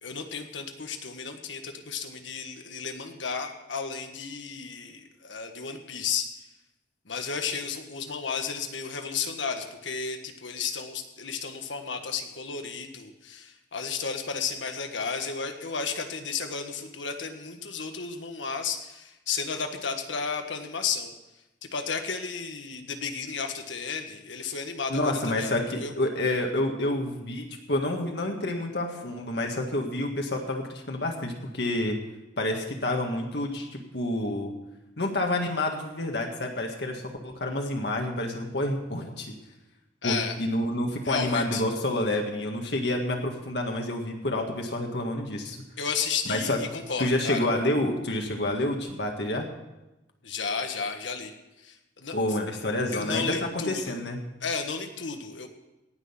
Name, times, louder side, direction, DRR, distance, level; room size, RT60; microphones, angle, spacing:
voice 1, 0.0-6.3 7.0-21.1 21.6-25.9 40.0-40.4 41.0-41.6 45.8-47.4 50.2-51.3 51.6-52.1 52.9-54.0 54.4-55.5, left 5 dB, 85° left, 6 dB, 1.5 m, -33 dB
voice 2, 24.9-32.0 32.4-34.5 35.0-39.3 40.0-45.6 46.3-46.6 47.0-49.5 52.1-54.2, left 1 dB, 65° left, 2 dB, 1.8 m, -28 dB
17.5 x 6.4 x 7.1 m, 0.98 s
head